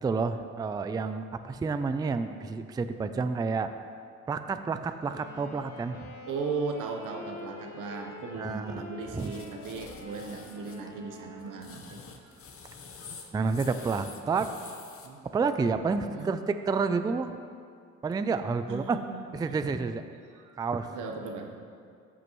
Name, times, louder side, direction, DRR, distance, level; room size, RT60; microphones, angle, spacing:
voice 1, 0.0-3.7 4.3-6.1 8.3-8.8 9.1-9.3 13.3-14.5 15.3-17.3 18.0-19.0 19.3-20.0 20.6-20.9, right 4 dB, 15° right, 9 dB, 0.3 m, -29 dB
Wind instrument woodwind instrument, 5.0-11.9, left 3 dB, 90° left, 1.6 m, -46 dB
voice 2, 6.3-12.0 13.0-13.1 15.0-15.2 16.0-16.4 18.7-19.9 20.3-20.5 20.8-21.6, right 4 dB, 85° right, 3 dB, 1.0 m, -37 dB
sound 1, 9.2-10.8 11.4-15.1, left 5 dB, 45° left, 0.9 m, -47 dB
13.5 x 6.2 x 3.0 m, 2.3 s
cardioid pair, 90°, 30 cm